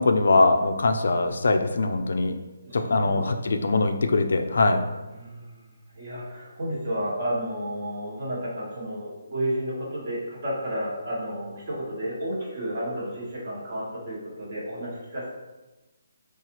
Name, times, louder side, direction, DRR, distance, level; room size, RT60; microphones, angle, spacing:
voice 1, 0.0-2.4 2.7-4.8, left 3 dB, 70° left, 6 dB, 0.3 m, -22 dB
voice 2, 2.6-4.0 5.1-5.7 5.9-15.3, equal, 40° right, -5 dB, 1.2 m, -32 dB
4.0 x 2.4 x 2.9 m, 1.1 s
hypercardioid pair, 165°, 0 cm